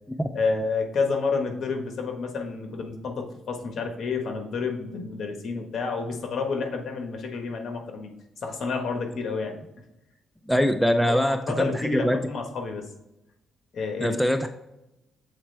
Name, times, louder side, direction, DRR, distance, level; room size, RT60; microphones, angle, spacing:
voice 1, 0.3-8.1 8.4-9.6 11.1-12.9 13.7-14.2, left 4 dB, 55° left, 4 dB, 1.4 m, -29 dB
voice 2, 10.5-12.2 14.0-14.5, equal, ahead, 7 dB, 0.4 m, -23 dB
7.4 x 4.1 x 3.3 m, 0.92 s
cardioid pair, 90°, 0 cm